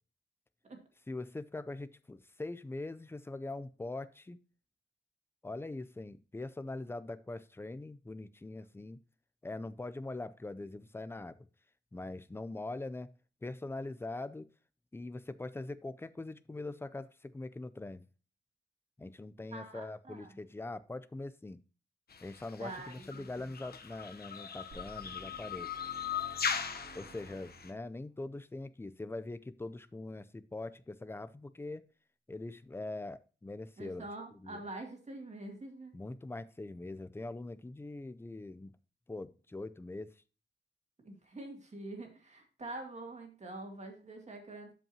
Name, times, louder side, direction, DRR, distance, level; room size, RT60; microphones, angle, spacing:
voice 1, 1.1-4.4 5.4-9.0 9.4-11.5 11.9-13.1 13.4-14.5 14.9-18.0 19.0-21.6 22.2-25.8 26.9-31.8 32.3-34.6 35.9-38.7 39.1-40.1, left 2 dB, 10° left, 0.4 m, -42 dB
voice 2, 19.5-20.4 22.6-23.5 33.8-35.9 41.0-44.7, right 2 dB, 35° right, 2.3 m, -45 dB
sound 1, 22.1-27.7, left 7 dB, 55° left, 1.0 m, -39 dB
sound 2, 24.7-28.0, right 3 dB, 90° right, 2.4 m, -55 dB
12.5 x 5.4 x 2.8 m
wide cardioid pair, 135°, 19 cm